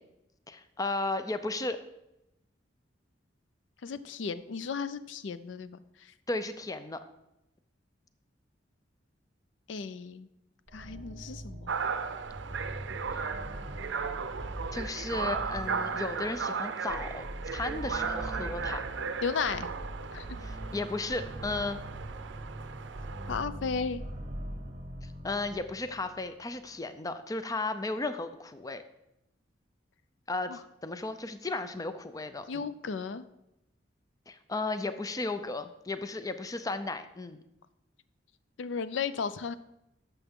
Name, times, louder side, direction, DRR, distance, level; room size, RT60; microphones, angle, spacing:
voice 1, 0.5-1.8 6.3-7.0 13.1-13.2 14.7-17.2 17.5-18.9 20.4-21.8 25.0-28.8 30.3-32.6 34.3-37.4, left 2 dB, 20° left, 10 dB, 0.5 m, -35 dB
voice 2, 3.8-6.1 9.7-10.3 10.7-11.7 19.2-19.7 20.1-20.4 23.3-24.0 30.5-30.6 32.5-33.3 38.6-39.5, left 5 dB, 75° left, 14 dB, 0.4 m, -34 dB
sound 1, 10.7-26.4, right 1 dB, 40° right, 0.9 m, -42 dB
sound 2, 11.7-23.4, right 5 dB, 70° right, 0.5 m, -36 dB
12.0 x 6.9 x 3.6 m, 0.88 s
head